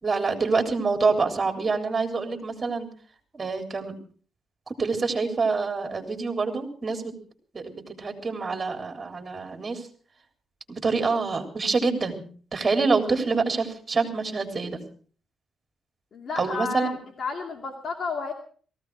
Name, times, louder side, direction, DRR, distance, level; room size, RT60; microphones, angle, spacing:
voice 1, 0.0-2.9 3.3-4.0 4.7-7.1 7.5-9.9 10.7-12.2 12.5-14.8 16.4-16.9, right 4 dB, 30° right, 5 dB, 3.5 m, -26 dB
voice 2, 16.1-18.3, left 4 dB, 50° left, 2 dB, 2.5 m, -31 dB
18.0 x 15.5 x 4.8 m, 0.43 s
cardioid pair, 95°, 0 cm